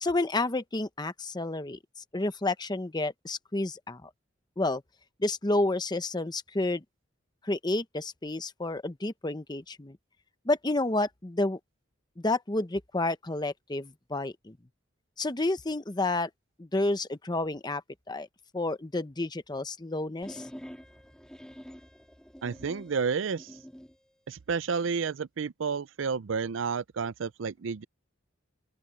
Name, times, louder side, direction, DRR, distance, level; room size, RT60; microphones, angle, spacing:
voice 1, 0.0-1.8 2.1-4.1 4.6-4.8 5.2-6.8 7.4-10.0 10.4-11.6 12.2-14.6 15.2-16.3 16.6-17.8 18.1-18.3 18.5-20.5, left 2 dB, 20° left, 0.9 m, -30 dB
sound 1, 20.2-24.0, equal, 5° left, 2.0 m, -47 dB
voice 2, 22.4-23.5 24.3-27.8, right 5 dB, 85° right, 0.5 m, -31 dB
open air
head